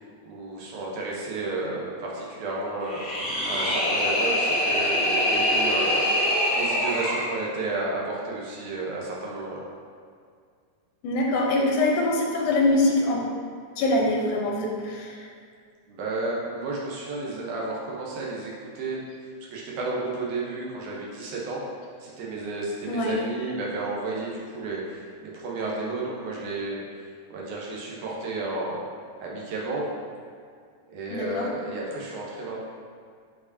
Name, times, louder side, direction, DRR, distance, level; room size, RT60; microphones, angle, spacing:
voice 1, 0.2-3.0 3.4-6.1 6.5-9.6 15.9-19.0 19.5-21.6 22.0-27.0 27.3-28.9 29.2-29.8 30.9-32.6, right 2 dB, 75° right, -4 dB, 2.4 m, -32 dB
sound 1, 2.8-7.3, left 1 dB, 45° left, 0.6 m, -24 dB
voice 2, 11.0-13.3 13.8-15.3 22.9-23.1 31.1-31.5, left 2 dB, 85° left, -1 dB, 2.4 m, -24 dB
8.2 x 4.6 x 2.8 m, 2.1 s
omnidirectional pair, 3.6 m